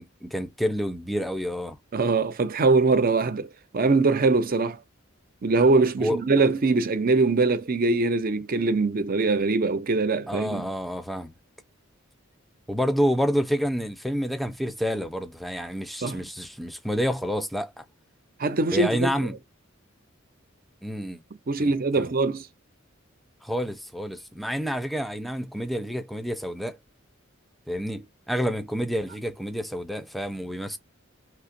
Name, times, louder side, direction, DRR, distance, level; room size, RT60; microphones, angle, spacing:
voice 1, 0.0-1.8 6.0-6.2 10.3-11.3 12.7-17.8 18.7-19.4 20.8-21.2 21.6-22.1 23.4-26.8 27.7-30.8, equal, ahead, 0.5 m, -29 dB
voice 2, 1.9-4.8 5.4-10.7 16.0-16.2 18.4-19.1 21.5-22.5, right 3 dB, 45° right, 0.6 m, -22 dB
5.5 x 2.1 x 2.5 m
head